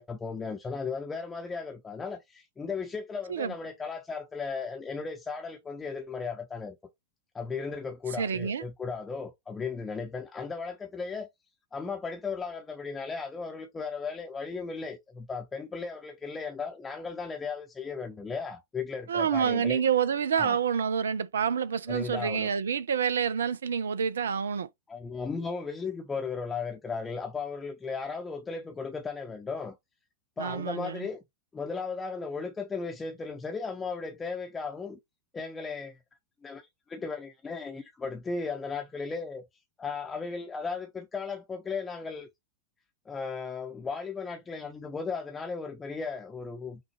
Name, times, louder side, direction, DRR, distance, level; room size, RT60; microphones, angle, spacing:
voice 1, 0.0-6.8 7.3-11.3 11.7-19.8 20.4-20.6 21.9-22.5 24.9-29.8 30.4-31.2 31.5-35.0 35.3-36.0 36.4-39.4 39.8-42.3 43.1-46.8, left 4 dB, 15° left, 0.7 m, -36 dB
voice 2, 8.2-8.6 19.1-24.7 30.4-31.1, right 7 dB, 65° right, 0.5 m, -28 dB
5.9 x 2.3 x 3.1 m
figure-of-eight pair, 90°, 0 cm